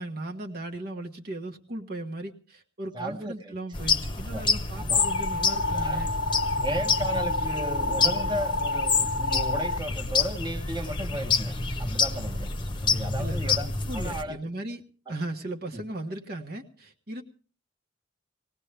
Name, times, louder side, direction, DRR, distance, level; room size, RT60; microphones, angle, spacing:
voice 1, 0.0-6.1 13.2-14.8 15.1-17.2, right 1 dB, 55° right, 2 dB, 1.4 m, -37 dB
voice 2, 2.9-3.6 4.3-4.5 4.7-5.1 5.7-6.0 6.6-11.5 11.8-12.5 12.8-13.7 13.9-14.4 15.1-15.2 15.7-15.8, right 1 dB, 25° right, 4 dB, 1.4 m, -34 dB
sound 1, 3.7-14.2, left 4 dB, 25° left, 1.0 m, -28 dB
sound 2, 5.0-9.8, left 2 dB, 75° left, 0.7 m, -29 dB
19.0 x 18.5 x 3.4 m, 0.38 s
head